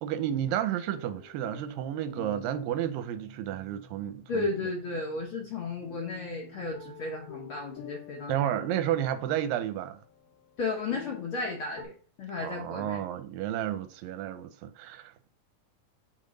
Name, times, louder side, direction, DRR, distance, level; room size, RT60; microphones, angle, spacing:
voice 1, 0.0-4.5 8.3-10.0 12.4-15.3, right 11 dB, 90° right, 2.4 m, -31 dB
sound 1, 0.9-11.8, left 6 dB, 85° left, 1.2 m, -49 dB
voice 2, 4.3-8.7 10.6-11.9 12.2-13.0, left 3 dB, 60° left, 1.5 m, -34 dB
8.5 x 3.5 x 3.9 m
omnidirectional pair, 4.0 m